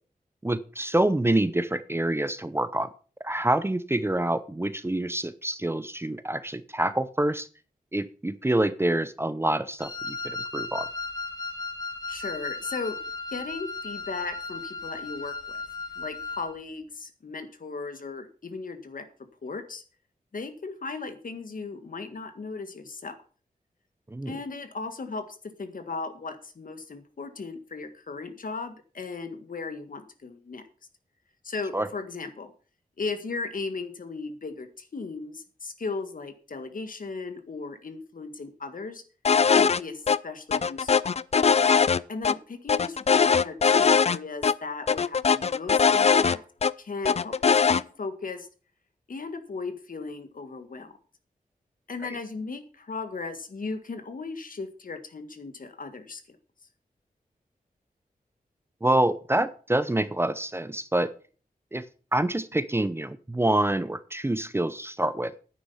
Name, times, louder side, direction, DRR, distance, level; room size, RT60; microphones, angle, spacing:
voice 1, 0.4-2.9 3.2-7.5 7.9-10.9 24.1-24.4 31.7-31.9 52.0-52.2 58.8-61.1 61.7-61.8 62.1-65.3, right 1 dB, 15° right, 14 dB, 0.7 m, -26 dB
Wind instrument woodwind instrument, 9.8-16.5, left 4 dB, 25° left, 2.4 m, -36 dB
voice 2, 12.1-13.0 13.3-15.6 16.0-19.1 19.4-19.8 20.3-23.2 24.3-30.6 31.4-32.5 33.0-39.0 39.5-40.9 42.1-46.4 46.8-48.5 49.1-50.9 51.9-56.4 59.0-59.1, left 4 dB, 65° left, 8 dB, 1.8 m, -36 dB
sound 1, 39.2-39.8 40.1-40.2 40.5-42.3 42.7-44.2 44.4-44.5 44.9-46.7 47.0-47.8, left 6 dB, 45° left, 0.4 m, -21 dB
10.0 x 9.4 x 5.6 m, 0.39 s
wide cardioid pair, 90°, 15 cm